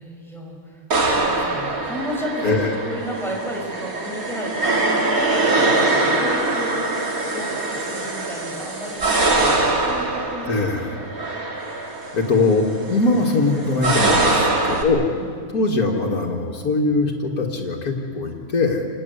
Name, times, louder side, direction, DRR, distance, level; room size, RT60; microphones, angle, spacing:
voice 1, 0.0-5.3 5.6-6.9 7.3-10.6 10.9-11.1 14.2-14.8 15.1-15.5, equal, ahead, -1 dB, 5.4 m, -33 dB
sound 1, 0.9-14.8, right 2 dB, 70° right, 2.7 m, -23 dB
voice 2, 2.4-2.7 10.5-11.0 12.1-14.4 14.7-15.1 15.5-18.9, left 3 dB, 85° left, -2 dB, 2.5 m, -21 dB
27.5 x 19.0 x 8.2 m, 2.1 s
omnidirectional pair, 1.5 m